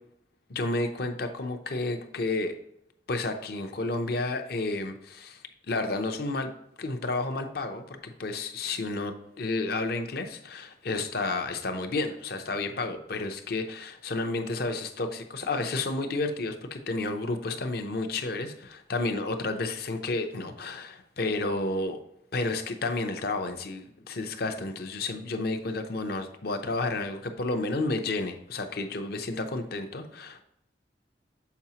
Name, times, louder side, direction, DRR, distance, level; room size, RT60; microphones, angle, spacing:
voice 1, 0.5-2.5 3.1-5.4 5.7-6.5 6.8-22.0 22.3-30.4, left 2 dB, 60° left, 7 dB, 0.7 m, -31 dB
7.0 x 4.8 x 2.9 m, 0.76 s
head